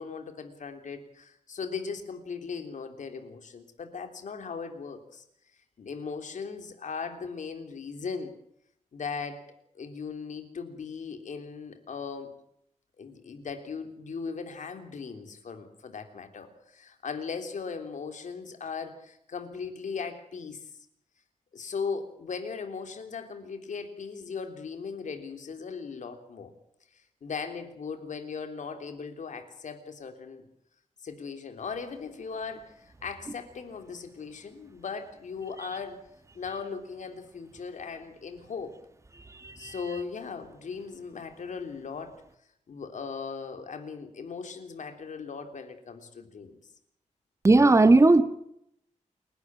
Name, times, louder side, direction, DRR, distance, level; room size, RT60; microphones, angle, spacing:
voice 1, 0.0-5.2 5.8-8.3 8.9-9.4 9.8-12.3 13.0-20.7 21.5-26.5 26.9-30.5 31.0-36.0 36.3-38.7 39.6-42.1 42.7-46.6, left 5 dB, 75° left, 6 dB, 3.4 m, -38 dB
voice 2, 47.4-48.2, right 2 dB, 20° right, 11 dB, 1.5 m, -17 dB
28.5 x 12.0 x 9.1 m, 0.74 s
wide cardioid pair, 160°, 13 cm